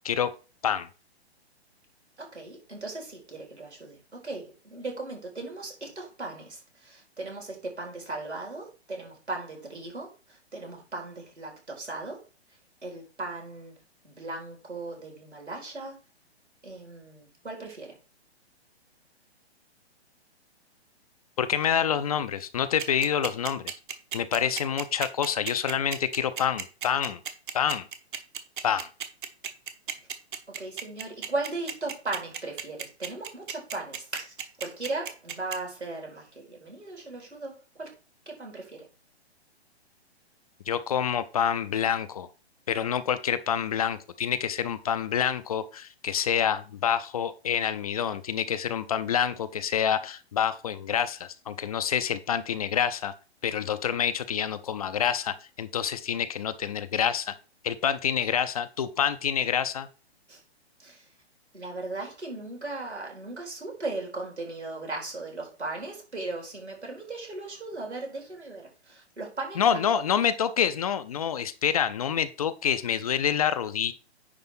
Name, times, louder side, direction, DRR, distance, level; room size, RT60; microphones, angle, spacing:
voice 1, 2.2-12.2 12.8-13.7 14.0-16.0 16.6-17.9 30.6-37.9 38.3-38.9 60.3-60.4 60.8-61.0 61.5-69.9, right 2 dB, 80° right, 0 dB, 4.2 m, -37 dB
voice 2, 21.4-23.6 24.1-27.2 27.5-27.9 28.6-28.9 40.7-42.3 42.7-53.1 53.4-57.3 57.6-59.9 69.6-73.9, left 8 dB, 35° left, 12 dB, 0.5 m, -27 dB
sound 1, 22.8-35.6, right 8 dB, 50° right, 1.1 m, -34 dB
9.7 x 3.4 x 5.8 m, 0.33 s
figure-of-eight pair, 125°, 33 cm